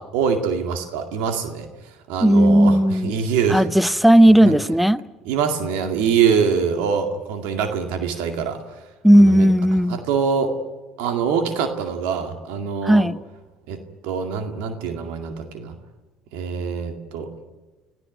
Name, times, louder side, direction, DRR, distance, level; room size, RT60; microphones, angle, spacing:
voice 1, 0.0-3.7 4.4-4.6 5.3-8.6 9.2-9.5 9.9-10.5 11.0-13.1 13.7-15.8 16.3-17.3, right 6 dB, 85° right, 6 dB, 2.1 m, -24 dB
voice 2, 2.2-3.1 3.5-5.0 9.0-10.0 12.8-13.2, equal, ahead, 17 dB, 0.8 m, -15 dB
26.5 x 16.5 x 9.2 m, 1.2 s
supercardioid pair, 90°, 3 cm